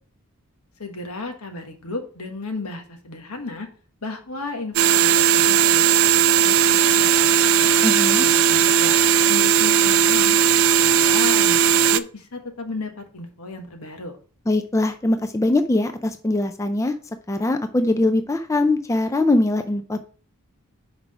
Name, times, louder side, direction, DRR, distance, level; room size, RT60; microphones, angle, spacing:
voice 1, 0.8-3.7 4.0-7.7 8.2-9.0 9.3-10.4 10.8-14.1, left 3 dB, 90° left, 5 dB, 1.4 m, -34 dB
sound 1, 4.8-12.0, right 8 dB, 65° right, 0.4 m, -17 dB
voice 2, 7.8-8.3 14.5-16.9 17.3-20.0, left 2 dB, 15° left, 8 dB, 0.4 m, -21 dB
5.8 x 4.8 x 4.8 m, 0.41 s
head